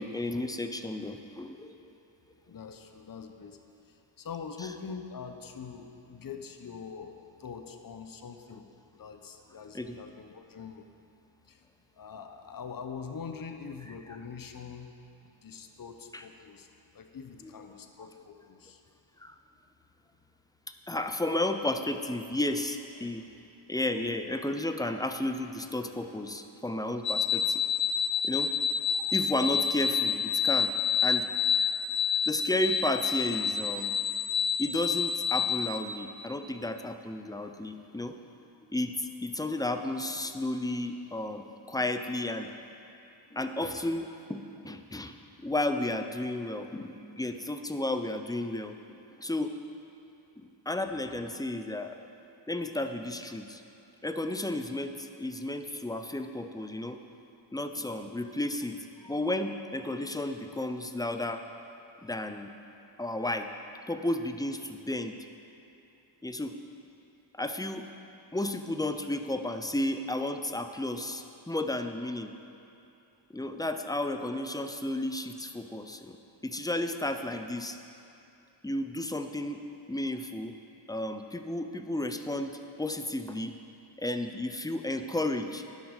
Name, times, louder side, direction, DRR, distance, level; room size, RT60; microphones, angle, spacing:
voice 1, 0.0-1.7 9.7-10.0 16.1-16.2 17.4-17.5 19.2-19.3 20.9-23.2 23.7-27.6 28.2-28.5 29.1-30.7 31.0-31.3 32.3-33.9 34.6-38.1 38.7-42.5 43.3-45.2 45.4-49.5 50.4-52.0 52.5-53.6 54.0-57.0 57.5-58.8 59.0-61.4 62.0-62.5 63.0-63.5 63.9-65.2 66.2-66.6 67.4-67.9 68.3-72.3 73.3-76.2 76.4-77.8 78.6-79.6 79.9-80.5 80.9-83.5 84.0-85.6, left 1 dB, 10° left, 7 dB, 0.6 m, -33 dB
voice 2, 2.5-3.6 3.9-8.6 8.9-10.9 11.5-11.7 12.0-14.9 15.4-16.7 16.9-18.8, left 6 dB, 45° left, 6 dB, 0.9 m, -43 dB
sound 1, 27.0-35.8, left 7 dB, 75° left, 0.9 m, -28 dB
10.5 x 6.2 x 6.5 m, 2.7 s
cardioid pair, 55°, 46 cm